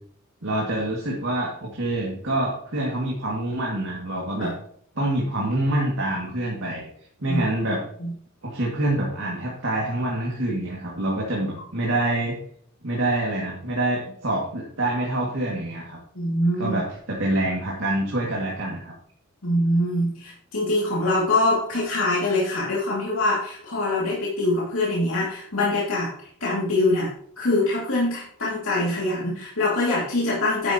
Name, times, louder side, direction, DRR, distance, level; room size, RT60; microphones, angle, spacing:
voice 1, 0.4-4.5 5.0-6.9 7.2-7.8 8.4-12.4 12.8-16.0 16.6-18.9, right 1 dB, 65° right, -3 dB, 2.4 m, -26 dB
voice 2, 16.1-16.8 19.4-26.1 26.4-27.1 27.4-30.7, left 2 dB, 80° left, -6 dB, 2.6 m, -24 dB
10.5 x 10.0 x 3.0 m, 0.63 s
head